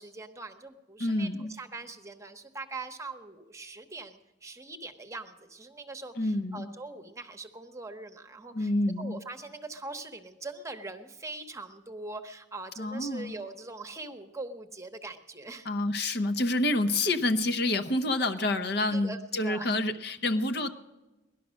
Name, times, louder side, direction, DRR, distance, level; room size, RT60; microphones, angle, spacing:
voice 1, 0.0-8.7 9.0-15.7 18.9-19.7, right 3 dB, 15° right, 7 dB, 1.0 m, -42 dB
voice 2, 1.0-1.5 6.2-6.7 8.5-9.2 12.8-13.3 15.6-20.7, left 2 dB, 60° left, 8 dB, 0.9 m, -28 dB
18.5 x 12.0 x 6.3 m, 1.1 s
head